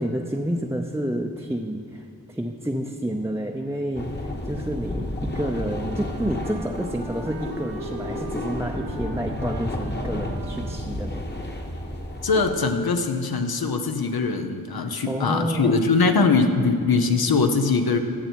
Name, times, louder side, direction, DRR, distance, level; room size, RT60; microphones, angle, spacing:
voice 1, 0.0-11.2 14.8-15.8, equal, 5° right, 1 dB, 0.6 m, -29 dB
sound 1, 3.9-12.5, left 1 dB, 30° left, 1.2 m, -32 dB
Wind instrument woodwind instrument, 5.6-11.1, right 4 dB, 85° right, 0.8 m, -40 dB
voice 2, 12.2-18.0, left 4 dB, 75° left, 6 dB, 0.9 m, -22 dB
15.0 x 6.7 x 4.6 m, 2.4 s
wide cardioid pair, 50°, 37 cm